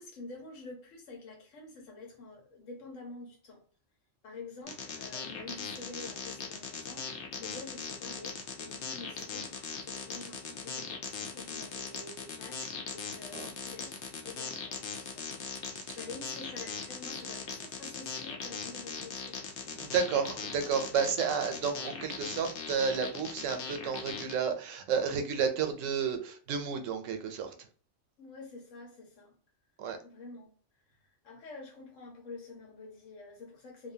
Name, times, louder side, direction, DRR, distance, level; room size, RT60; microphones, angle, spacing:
voice 1, 0.0-3.6 4.2-15.3 15.9-19.5 20.9-21.1 28.2-29.3 30.0-30.5 31.2-33.9, left 3 dB, 85° left, 1 dB, 1.3 m, -48 dB
sound 1, 4.7-24.3, left 5 dB, 70° left, 0.9 m, -39 dB
voice 2, 19.7-27.7 29.8-30.0, right 6 dB, 90° right, 7 dB, 0.9 m, -32 dB
2.8 x 2.1 x 2.6 m, 0.43 s
omnidirectional pair, 1.3 m